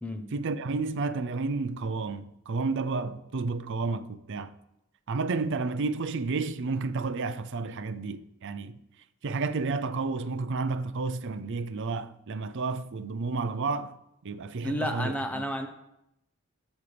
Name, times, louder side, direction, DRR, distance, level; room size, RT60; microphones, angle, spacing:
voice 1, 0.3-4.5 5.1-8.8 9.2-14.0 14.2-15.5, right 3 dB, 60° right, 0.5 m, -31 dB
voice 2, 14.6-15.7, equal, 5° left, 0.9 m, -31 dB
12.5 x 7.3 x 3.4 m
head